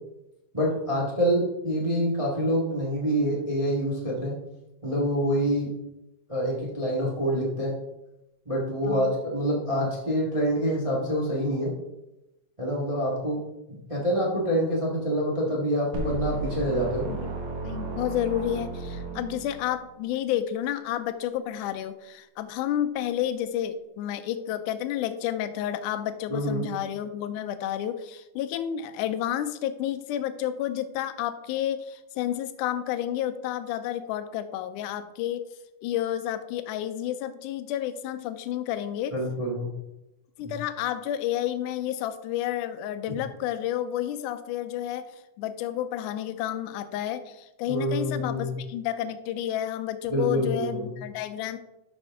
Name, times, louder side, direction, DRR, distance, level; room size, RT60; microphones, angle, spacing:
voice 1, 0.5-4.3 4.8-5.7 6.3-7.7 8.4-11.7 12.6-13.4 13.7-17.1 26.3-26.7 39.1-39.7 47.7-48.5 50.1-50.9, equal, 35° right, -4 dB, 0.5 m, -26 dB
voice 2, 8.8-9.2 17.1-17.3 17.6-35.5 35.8-39.2 40.4-45.1 45.4-51.6, left 11 dB, 80° left, 10 dB, 2.0 m, -30 dB
sound 1, 15.9-19.9, right 3 dB, 55° right, 1.8 m, -34 dB
12.5 x 5.3 x 3.6 m, 0.92 s
omnidirectional pair, 3.9 m